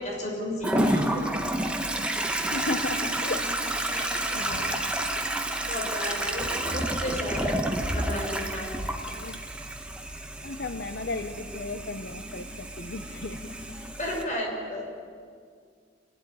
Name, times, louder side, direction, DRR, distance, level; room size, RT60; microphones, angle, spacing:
voice 1, 0.0-1.3 2.4-2.6 3.9-5.1 5.6-7.7 7.9-8.7 14.0-14.8, left 1 dB, 40° left, 6.0 m, -34 dB
Toilet flush, 0.6-14.2, right 1 dB, 5° right, 1.4 m, -30 dB
voice 2, 2.3-4.9 9.1-9.5 10.4-13.8, left 3 dB, 60° left, 0.8 m, -36 dB
29.5 x 12.5 x 9.5 m
head